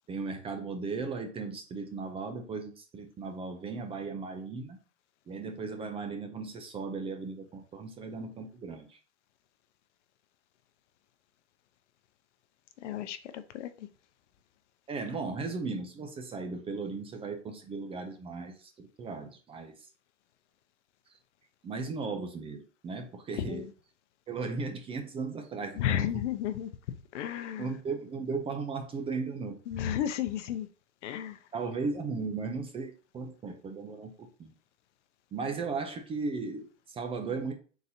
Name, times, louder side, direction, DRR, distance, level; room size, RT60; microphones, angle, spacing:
voice 1, 0.1-4.8 5.3-9.0 14.9-19.9 21.6-23.7 24.3-26.2 27.6-29.6 31.5-34.5 35.3-37.5, right 4 dB, 15° right, 0.5 m, -36 dB
voice 2, 12.8-13.2 13.5-13.7 23.5-23.7 25.8-26.7 27.1-27.7 29.7-30.7 31.0-31.4, left 10 dB, 75° left, 0.7 m, -32 dB
4.1 x 4.0 x 2.7 m
supercardioid pair, 130°, 36 cm